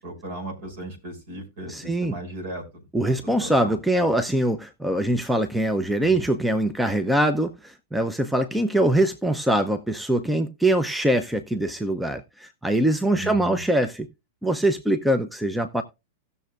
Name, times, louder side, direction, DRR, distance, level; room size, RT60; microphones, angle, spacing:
voice 1, 0.0-4.1 6.0-6.2 13.1-13.6, right 1 dB, 55° right, 5.9 m, -37 dB
voice 2, 1.7-2.2 2.9-14.1 14.4-15.8, right 1 dB, 5° right, 0.7 m, -23 dB
17.5 x 6.8 x 2.4 m
figure-of-eight pair, 95°, 0 cm